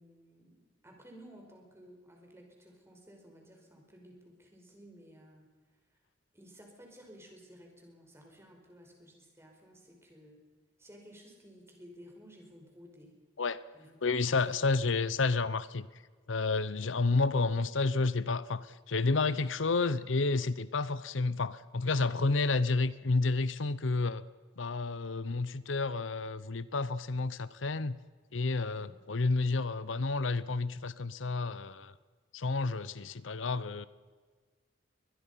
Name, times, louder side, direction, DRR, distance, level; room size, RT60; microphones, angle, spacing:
voice 1, 0.0-5.5 6.3-10.4 10.8-13.2 13.7-15.1 28.8-29.0, equal, 15° right, 5.2 m, -55 dB
voice 2, 14.0-15.9 16.3-24.2 24.6-27.9 28.3-31.9 32.3-33.9, left 3 dB, 85° left, 0.8 m, -30 dB
23.0 x 21.0 x 5.7 m
head